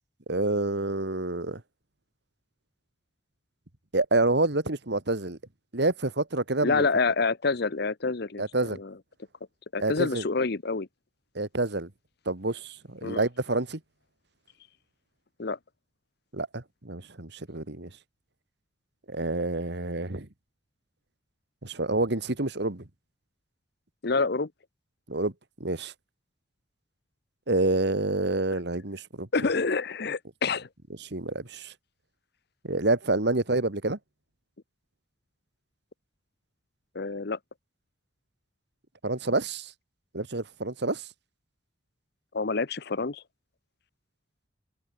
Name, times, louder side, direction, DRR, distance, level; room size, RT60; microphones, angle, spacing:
voice 1, 0.3-1.6 3.9-5.4 5.7-6.9 8.4-8.8 9.8-10.3 11.4-11.9 12.3-13.8 16.3-17.9 19.1-20.3 21.6-22.8 25.1-25.3 25.6-25.9 27.5-29.3 31.0-31.7 32.6-34.0 39.0-39.7 40.1-41.1, right 2 dB, 65° right, 2.0 m, -28 dB
voice 2, 6.6-8.9 9.7-10.9 13.0-13.2 15.4-15.6 24.0-24.5 29.3-30.7 36.9-37.4 42.3-43.2, left 4 dB, 60° left, 0.9 m, -27 dB
head